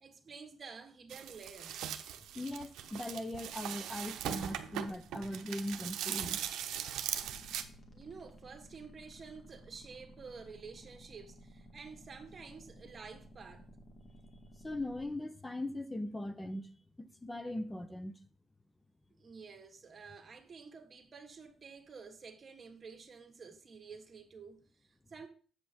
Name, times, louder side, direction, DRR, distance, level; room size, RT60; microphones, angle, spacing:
voice 1, 0.0-1.8 7.9-13.7 19.2-25.3, right 5 dB, 40° right, 1.6 m, -50 dB
sound 1, 1.1-7.6, right 10 dB, 85° right, 0.7 m, -40 dB
voice 2, 2.3-6.4 14.6-16.7 17.2-18.2, left 1 dB, 15° left, 0.6 m, -39 dB
sound 2, 7.1-15.1, equal, 35° left, 1.8 m, -56 dB
8.0 x 5.4 x 4.3 m
cardioid pair, 90°, 0 cm